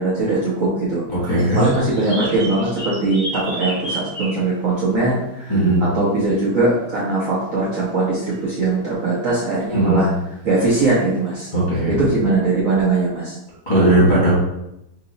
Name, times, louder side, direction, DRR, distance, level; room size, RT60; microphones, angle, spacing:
voice 1, 0.0-1.0 1.5-10.1 10.4-11.5 11.9-13.4, right 2 dB, 55° right, -7 dB, 1.0 m, -20 dB
voice 2, 1.1-1.6 5.5-5.9 9.7-10.1 11.5-11.9 13.7-14.3, right 1 dB, 30° left, -8 dB, 1.0 m, -17 dB
sound 1, 1.3-4.4 5.7-5.8 11.0-11.1 12.1-12.2, right 1 dB, 40° right, 1.3 m, -31 dB
3.0 x 2.9 x 3.8 m, 0.86 s
omnidirectional pair, 2.1 m